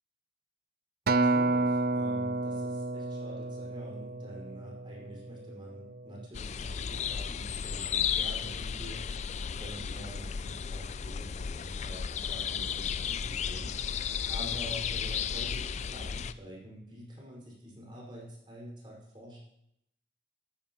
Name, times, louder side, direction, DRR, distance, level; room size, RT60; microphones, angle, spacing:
voice 1, 1.1-9.2 9.6-14.0 14.3-19.4, equal, 30° right, -4 dB, 5.2 m, -46 dB
Acoustic guitar, 1.1-5.5 6.1-6.3, right 2 dB, 55° right, 0.5 m, -30 dB
sound 1, 6.3-16.3, left 7 dB, 40° left, 0.4 m, -34 dB
14.5 x 14.0 x 3.1 m, 0.77 s
head